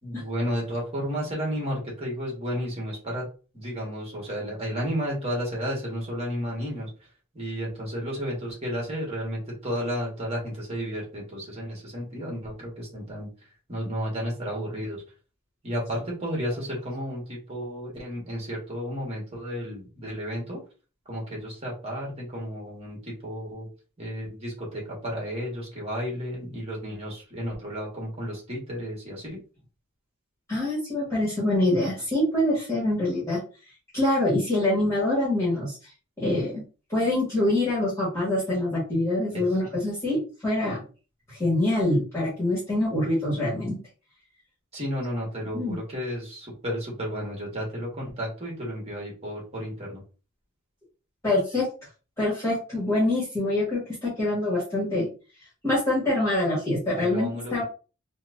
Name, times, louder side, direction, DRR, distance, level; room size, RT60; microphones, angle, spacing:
voice 1, 0.0-3.2 3.5-6.9 7.3-13.3 13.7-15.0 15.6-20.6 21.1-23.7 24.0-29.4 39.3-39.4 44.7-50.0 57.0-57.6, equal, 30° right, -2 dB, 1.5 m, -32 dB
voice 2, 30.5-33.4 33.9-35.7 36.2-36.6 36.9-40.8 41.3-43.8 45.4-45.8 51.2-51.7 52.2-55.0 55.6-57.6, left 1 dB, 15° left, -9 dB, 1.4 m, -25 dB
4.3 x 2.2 x 2.5 m, 0.35 s
head